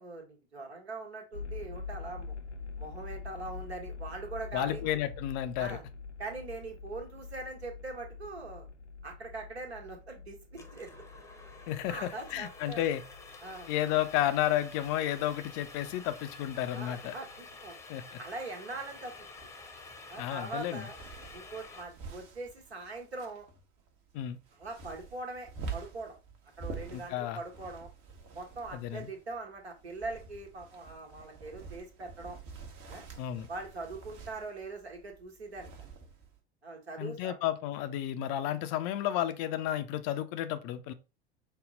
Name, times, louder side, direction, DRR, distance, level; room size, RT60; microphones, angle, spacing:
voice 1, 0.0-2.3 2.8-5.1 5.6-5.8 6.2-8.7 9.0-10.9 11.9-12.8 13.4-13.7 16.7-17.8 18.2-19.1 20.1-21.0 21.3-23.4 24.5-26.2 26.6-27.9 28.3-32.4 32.9-33.0 33.5-35.7 36.6-37.3 37.7-37.9, right 3 dB, 75° right, 1.3 m, -42 dB
sound 1, 1.3-17.6, left 4 dB, 80° left, 0.6 m, -46 dB
voice 2, 4.5-5.8 11.7-13.0 13.7-17.1 17.9-18.2 20.2-20.8 24.1-24.4 26.9-27.4 28.7-29.1 33.2-33.5 37.0-40.9, left 12 dB, 40° left, 0.5 m, -32 dB
sound 2, 10.6-21.8, left 3 dB, 10° left, 0.7 m, -49 dB
sound 3, 18.9-36.4, right 4 dB, 40° right, 1.0 m, -48 dB
5.3 x 2.1 x 3.8 m
figure-of-eight pair, 80°, 32 cm